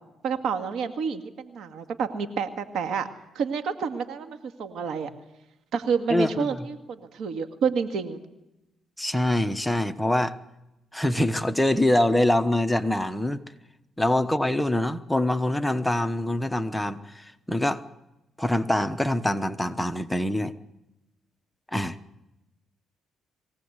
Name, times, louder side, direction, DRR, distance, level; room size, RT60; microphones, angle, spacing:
voice 1, 0.2-3.1 3.4-5.1 5.7-8.2, right 6 dB, 75° right, 7 dB, 2.1 m, -29 dB
voice 2, 6.1-6.5 9.0-10.3 10.9-13.4 14.0-17.8 18.4-20.5 21.7-21.9, left 1 dB, 5° left, 9 dB, 1.1 m, -24 dB
23.0 x 17.0 x 8.2 m, 0.94 s
cardioid pair, 90°, 0 cm